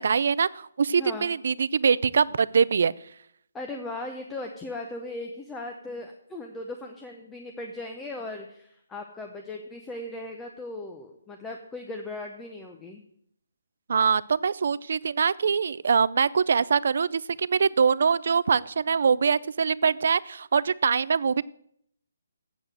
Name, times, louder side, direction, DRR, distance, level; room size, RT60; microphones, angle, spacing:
voice 1, 0.0-2.9 13.9-21.4, right 6 dB, 50° right, 20 dB, 0.4 m, -23 dB
voice 2, 3.5-13.0, left 2 dB, 5° left, 2 dB, 0.6 m, -38 dB
8.0 x 7.0 x 7.6 m, 0.70 s
hypercardioid pair, 175°, 0 cm